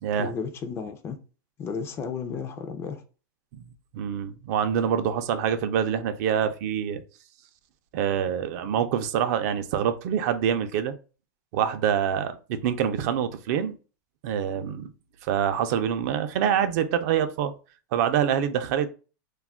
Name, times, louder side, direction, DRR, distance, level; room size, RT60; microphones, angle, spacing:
voice 1, 0.2-1.2 1.6-3.0, left 5 dB, 25° left, 0.3 m, -33 dB
voice 2, 3.9-7.0 7.9-10.9 11.5-13.7 14.2-14.9 15.3-17.5 17.9-18.9, right 8 dB, 55° right, 0.4 m, -25 dB
2.3 x 2.1 x 3.4 m
supercardioid pair, 140°, 11 cm